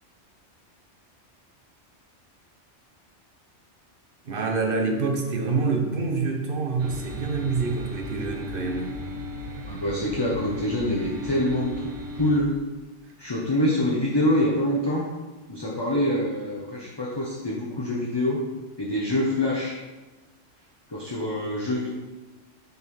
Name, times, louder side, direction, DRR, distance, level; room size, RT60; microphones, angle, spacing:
voice 1, 4.2-9.0, right 4 dB, 50° right, 3 dB, 1.1 m, -26 dB
sound 1, 6.8-12.4, left 1 dB, 80° right, 1.2 m, -35 dB
voice 2, 9.7-12.5 13.2-15.1 15.5-18.4 18.8-19.7 20.9-21.9, left 1 dB, 20° left, -4 dB, 1.0 m, -25 dB
7.9 x 4.1 x 5.6 m, 1.2 s
omnidirectional pair, 1.2 m